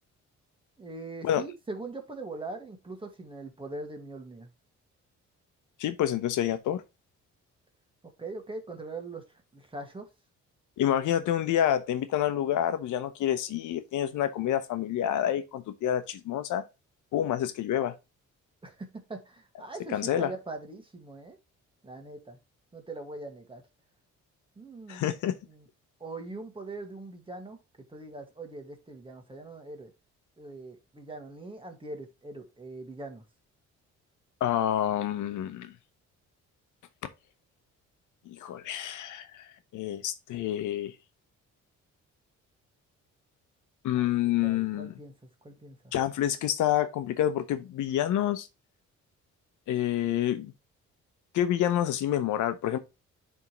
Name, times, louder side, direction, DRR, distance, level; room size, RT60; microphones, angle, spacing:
voice 1, 0.8-4.5 8.2-10.1 18.6-21.4 21.8-22.4 22.7-23.6 24.6-25.2 25.5-25.7 26.0-27.6 27.9-29.9 30.4-33.3 43.9-44.1 44.4-45.1 45.4-45.9, right 2 dB, 15° right, 1.7 m, -42 dB
voice 2, 5.8-6.8 10.8-16.6 17.1-17.9 19.9-20.3 24.9-25.3 34.4-35.7 38.3-39.5 39.7-40.9 43.8-44.9 45.9-48.5 49.7-50.5 51.3-52.8, left 11 dB, 80° left, 0.8 m, -28 dB
11.0 x 3.6 x 3.0 m
cardioid pair, 90°, 30 cm